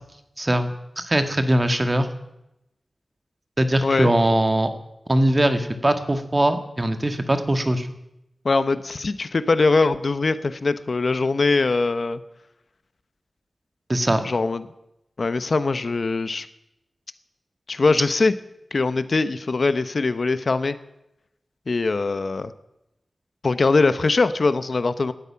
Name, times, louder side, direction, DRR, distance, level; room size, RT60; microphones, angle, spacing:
voice 1, 0.4-2.1 3.6-4.7 5.1-7.9 13.9-14.3, right 1 dB, 25° right, 8 dB, 1.7 m, -21 dB
voice 2, 8.4-12.2 14.2-14.6 15.2-16.5 17.7-18.3 18.7-20.7 21.7-22.5 23.4-25.1, left 3 dB, 60° left, 12 dB, 0.9 m, -22 dB
18.5 x 12.5 x 5.8 m, 0.86 s
wide cardioid pair, 75°, 0 cm